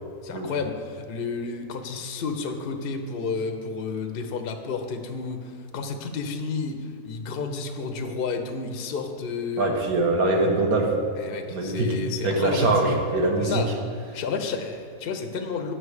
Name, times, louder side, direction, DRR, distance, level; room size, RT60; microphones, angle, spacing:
voice 1, 0.2-9.7 11.2-12.7 13.4-13.7 14.1-15.7, left 4 dB, 60° left, 5 dB, 0.6 m, -31 dB
voice 2, 9.6-11.0 11.5-12.0 12.2-13.6, right 2 dB, 65° right, 1 dB, 1.4 m, -23 dB
9.1 x 5.6 x 4.8 m, 2.3 s
omnidirectional pair, 1.7 m